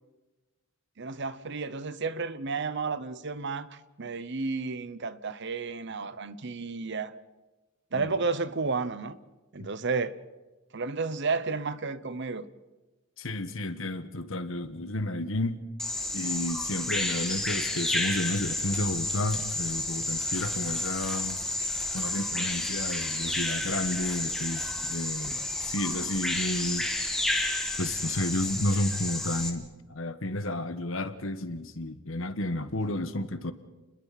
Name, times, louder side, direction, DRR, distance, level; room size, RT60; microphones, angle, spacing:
voice 1, 1.0-7.1 7.9-9.2 9.5-10.2 10.7-12.4, right 4 dB, 55° right, 0.9 m, -32 dB
voice 2, 13.2-15.6 16.1-21.4 21.9-26.9 27.8-33.5, left 1 dB, 65° left, 1.3 m, -32 dB
Bird vocalization bird call bird song, 15.8-29.5, left 2 dB, ahead, 2.3 m, -31 dB
30.0 x 21.5 x 4.2 m
head